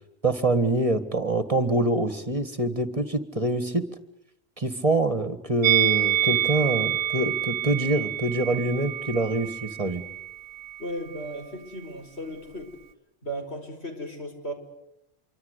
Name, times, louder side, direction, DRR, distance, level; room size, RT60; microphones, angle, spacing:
voice 1, 0.2-3.8 4.6-10.0, right 2 dB, 35° right, 11 dB, 1.8 m, -25 dB
Musical instrument, 5.6-10.9 11.1-11.3, right 11 dB, 65° right, 1.4 m, -27 dB
voice 2, 10.8-12.8 13.2-14.5, equal, 90° left, 4 dB, 5.3 m, -35 dB
26.5 x 24.0 x 8.2 m, 0.80 s
omnidirectional pair, 1.1 m